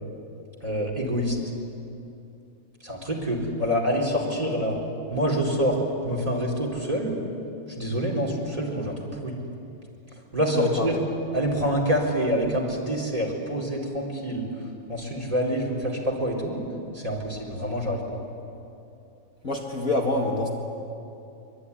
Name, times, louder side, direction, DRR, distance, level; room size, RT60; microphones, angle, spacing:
voice 1, 0.6-1.4 2.8-4.8 5.1-7.2 7.8-9.4 10.3-10.9 11.3-14.5 14.9-16.6 16.9-18.2, equal, 15° right, -1 dB, 4.3 m, -26 dB
voice 2, 10.5-11.0 19.4-20.5, left 2 dB, 40° left, -1 dB, 2.4 m, -26 dB
25.0 x 24.0 x 9.9 m, 2.7 s
omnidirectional pair, 2.3 m